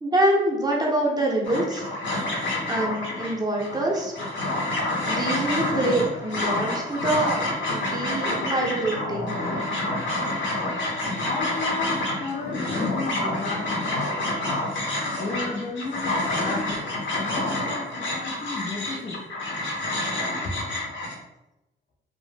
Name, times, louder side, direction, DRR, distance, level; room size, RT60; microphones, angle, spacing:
voice 1, 0.0-1.8 2.7-4.1 5.1-7.4 7.7-9.3, right 1 dB, 20° right, -2 dB, 0.6 m, -25 dB
sound 1, 1.4-21.1, left 2 dB, 70° left, 0.8 m, -28 dB
voice 2, 11.2-13.9 15.1-19.2 20.4-20.5, left 3 dB, 35° left, -1 dB, 0.5 m, -33 dB
2.1 x 2.0 x 3.2 m, 0.94 s
cardioid pair, 90°, 20 cm